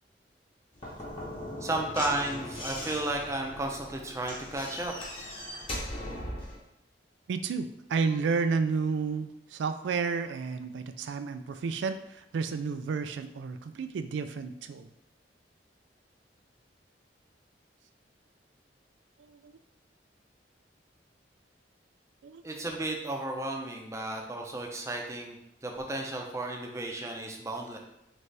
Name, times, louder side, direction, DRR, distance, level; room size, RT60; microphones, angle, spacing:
Slam / Knock, 0.7-6.6, left 1 dB, 30° left, 1.0 m, -39 dB
voice 1, 1.6-5.0 22.4-27.8, right 2 dB, 15° right, 1 dB, 0.5 m, -33 dB
voice 2, 7.3-14.9 19.3-19.5 22.2-22.4, right 5 dB, 85° right, 10 dB, 0.3 m, -31 dB
4.0 x 3.2 x 3.3 m, 0.80 s
head